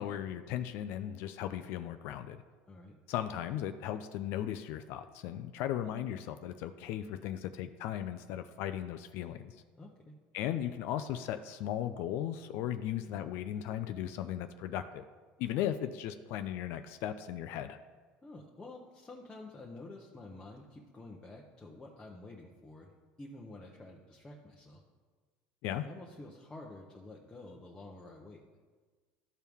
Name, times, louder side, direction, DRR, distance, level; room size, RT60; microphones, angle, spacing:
voice 1, 0.0-2.4 3.1-9.5 10.3-15.0 15.4-17.8 25.6-25.9, left 11 dB, 65° left, 9 dB, 0.4 m, -37 dB
voice 2, 9.7-10.1 18.2-24.8 25.8-28.4, left 2 dB, 15° left, -2 dB, 0.8 m, -49 dB
13.0 x 4.5 x 3.5 m, 1.4 s
cardioid pair, 130°, 4 cm